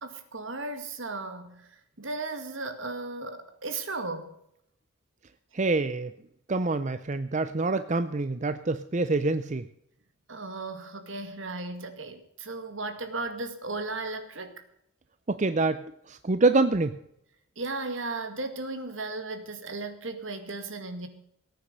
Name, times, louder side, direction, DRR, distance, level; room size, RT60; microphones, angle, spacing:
voice 1, 0.0-4.3 10.3-14.6 17.6-21.1, right 3 dB, 65° right, 8 dB, 2.1 m, -36 dB
voice 2, 5.5-6.1 6.5-9.6 15.3-17.0, right 3 dB, 35° right, 11 dB, 0.5 m, -26 dB
18.0 x 9.3 x 6.8 m, 0.75 s
head